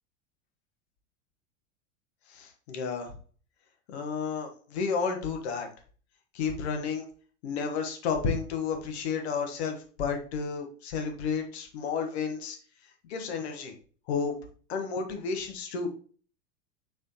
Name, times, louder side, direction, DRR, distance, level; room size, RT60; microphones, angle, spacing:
voice 1, 2.3-3.1 3.9-5.7 6.3-7.1 7.4-12.6 13.1-13.7 14.1-14.3 14.7-15.9, left 5 dB, 55° left, 5 dB, 1.4 m, -31 dB
6.4 x 4.9 x 3.0 m, 0.42 s
figure-of-eight pair, 90°, 38 cm